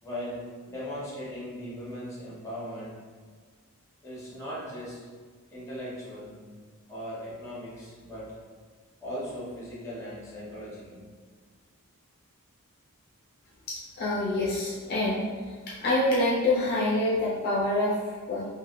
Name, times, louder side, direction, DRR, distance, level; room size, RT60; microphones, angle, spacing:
voice 1, 0.0-3.0 4.0-5.0 5.5-6.5 6.9-8.3 9.0-11.1, equal, 15° left, -7 dB, 0.9 m, -38 dB
voice 2, 13.7-15.2 15.8-18.5, left 1 dB, 45° left, -7 dB, 0.5 m, -26 dB
3.2 x 2.5 x 2.4 m, 1.5 s
head